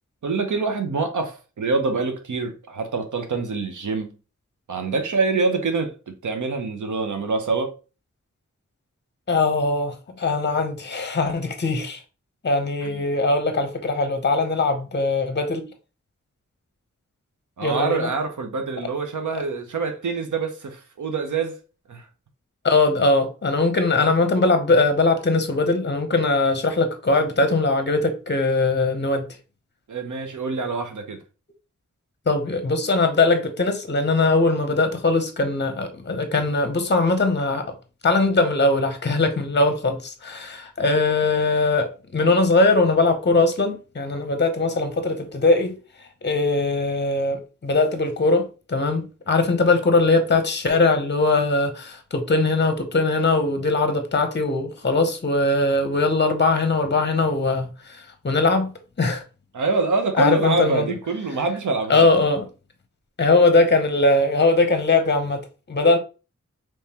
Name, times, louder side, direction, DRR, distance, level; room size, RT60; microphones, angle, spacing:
voice 1, 0.2-4.1 4.7-7.7 12.8-13.0 17.6-21.6 21.9-22.0 29.9-31.2 59.5-62.1, right 4 dB, 80° right, 0.8 m, -25 dB
voice 2, 9.3-12.0 12.4-15.6 17.6-18.1 22.6-29.3 32.3-37.7 38.0-45.7 46.2-58.7 59.0-59.2 60.2-60.9 61.9-62.4 63.2-66.0, left 3 dB, 35° left, 0.7 m, -21 dB
3.4 x 3.1 x 2.8 m
wide cardioid pair, 55°, 30 cm